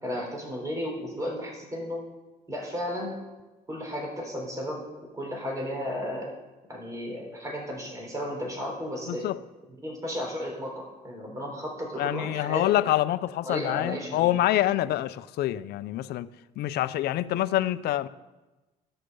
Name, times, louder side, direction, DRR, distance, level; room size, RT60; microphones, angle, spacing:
voice 1, 0.0-2.0 2.5-3.2 3.7-4.8 5.1-6.3 6.7-9.3 9.8-12.6 13.4-14.3, equal, 20° right, 3.9 m, -34 dB
voice 2, 9.1-9.4 12.0-16.3 16.6-18.1, left 14 dB, 70° left, 0.5 m, -26 dB
15.5 x 6.8 x 5.5 m
cardioid pair, 110°, 17 cm